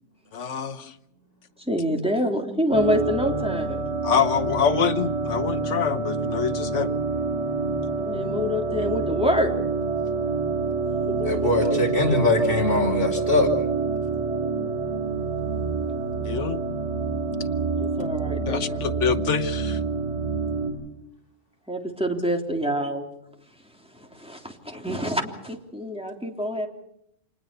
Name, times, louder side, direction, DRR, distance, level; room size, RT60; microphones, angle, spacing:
voice 1, 0.3-0.8 4.0-6.9 16.3-16.6 18.5-19.8, left 7 dB, 70° left, 11 dB, 1.5 m, -25 dB
voice 2, 1.7-3.8 8.0-9.5 11.2-11.8 17.8-18.8 21.7-23.0 24.0-26.7, equal, 5° right, 2 dB, 3.3 m, -26 dB
sound 1, 2.7-20.7, right 4 dB, 65° right, 8.5 m, -27 dB
voice 3, 11.3-13.5, left 2 dB, 45° left, 1 dB, 4.9 m, -22 dB
27.0 x 20.5 x 6.9 m, 0.77 s
omnidirectional pair, 1.3 m